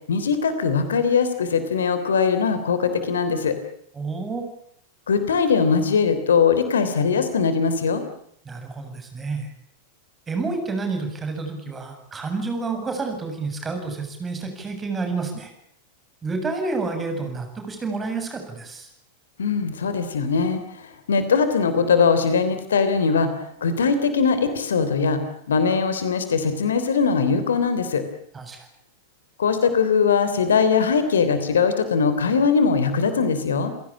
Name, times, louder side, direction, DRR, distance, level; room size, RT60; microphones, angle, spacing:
voice 1, 0.1-3.6 5.1-8.0 19.4-25.2 25.5-28.0 29.4-33.7, left 5 dB, 65° left, 10 dB, 3.3 m, -21 dB
voice 2, 3.9-4.4 8.4-9.5 10.3-15.5 16.2-18.9 28.3-28.7, right 3 dB, 15° right, 5 dB, 7.7 m, -29 dB
30.0 x 17.5 x 8.7 m, 0.68 s
figure-of-eight pair, 90°, 0 cm